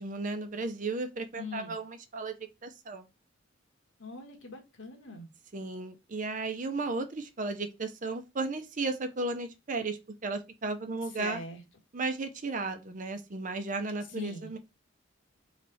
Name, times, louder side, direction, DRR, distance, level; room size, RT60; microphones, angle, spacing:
voice 1, 0.0-2.3 2.6-3.1 5.5-11.4 11.9-14.6, right 3 dB, 40° right, 0.6 m, -34 dB
voice 2, 1.4-1.7 4.0-5.3 11.0-11.6 14.0-14.5, left 3 dB, 80° left, 1.4 m, -42 dB
4.1 x 3.2 x 3.2 m
head